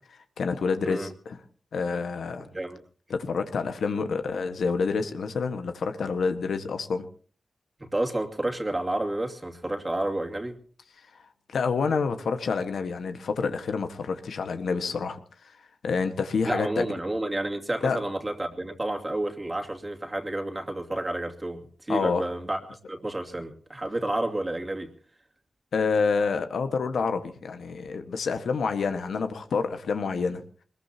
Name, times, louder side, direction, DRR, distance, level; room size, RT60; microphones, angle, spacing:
voice 1, 0.1-1.4 1.7-2.5 3.1-7.0 11.5-15.5 15.8-16.9 17.8-18.0 21.9-22.2 25.7-30.4, left 5 dB, 80° left, 7 dB, 1.5 m, -28 dB
voice 2, 7.8-10.6 16.4-24.9, right 1 dB, 20° right, 3 dB, 2.5 m, -30 dB
23.0 x 21.0 x 2.9 m, 0.43 s
cardioid pair, 70°, 0 cm